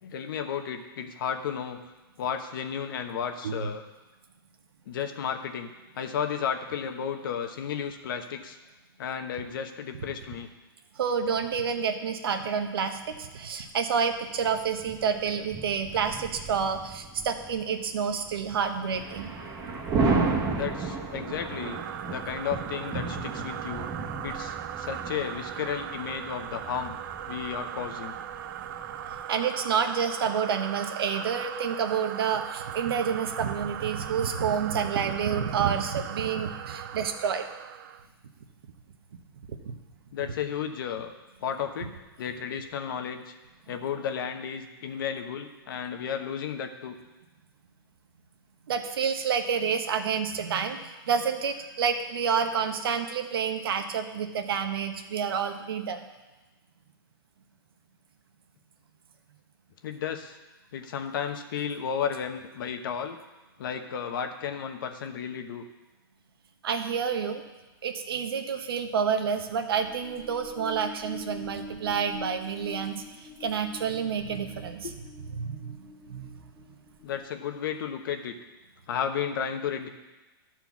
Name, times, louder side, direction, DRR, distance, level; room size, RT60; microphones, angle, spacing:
voice 1, 0.0-1.8 2.2-3.8 4.9-5.7 6.0-8.6 9.0-10.5 20.4-21.8 22.1-23.9 24.2-26.9 27.3-28.2 36.7-36.8 40.1-41.1 41.4-43.3 43.7-47.0 59.8-60.4 60.7-63.2 63.6-65.6 74.8-74.9 77.0-78.3 78.9-79.9, left 7 dB, 60° left, 6 dB, 1.1 m, -33 dB
voice 2, 11.0-19.3 29.3-37.5 39.6-39.7 48.7-56.0 66.6-67.4 67.8-73.0 73.4-74.9 75.4-76.3, right 7 dB, 75° right, 6 dB, 1.1 m, -29 dB
sound 1, 13.0-13.1 14.3-29.2, right 3 dB, 25° right, 1.4 m, -34 dB
sound 2, 21.0-38.1, right 10 dB, 55° right, 0.5 m, -39 dB
sound 3, 69.8-77.4, left 3 dB, 10° left, 1.4 m, -45 dB
11.5 x 4.5 x 7.2 m, 1.1 s
hypercardioid pair, 150°, 12 cm